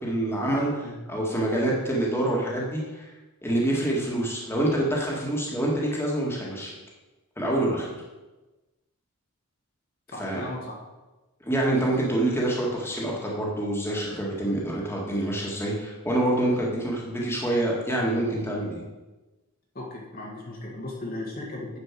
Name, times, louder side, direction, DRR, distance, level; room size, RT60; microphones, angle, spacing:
voice 1, 0.0-3.1 3.4-6.7 7.4-7.9 10.2-10.4 11.4-18.8, right 1 dB, 10° left, -3 dB, 2.0 m, -26 dB
voice 2, 10.1-10.7 19.8-21.8, left 1 dB, 40° left, -2 dB, 1.7 m, -36 dB
9.6 x 5.1 x 7.5 m, 1.1 s
head